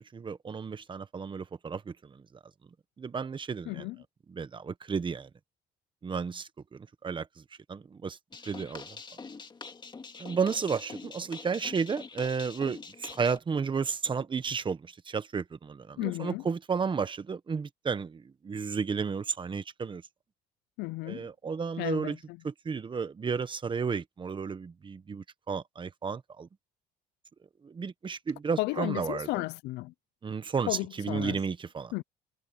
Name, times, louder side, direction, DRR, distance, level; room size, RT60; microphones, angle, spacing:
voice 1, 0.0-2.2 3.0-3.9 4.3-5.3 6.0-7.3 7.7-8.2 8.4-9.0 10.2-20.0 21.0-22.2 22.4-26.5 27.6-29.3 30.2-31.9, right 5 dB, 30° right, 1.2 m, -33 dB
voice 2, 3.7-4.0 16.0-16.4 20.8-21.3 21.8-22.4 28.6-29.9 30.7-31.4 31.9-32.0, left 21 dB, 90° left, 0.5 m, -33 dB
sound 1, 8.3-13.4, left 4 dB, 25° left, 2.1 m, -45 dB
cardioid pair, 110°, 17 cm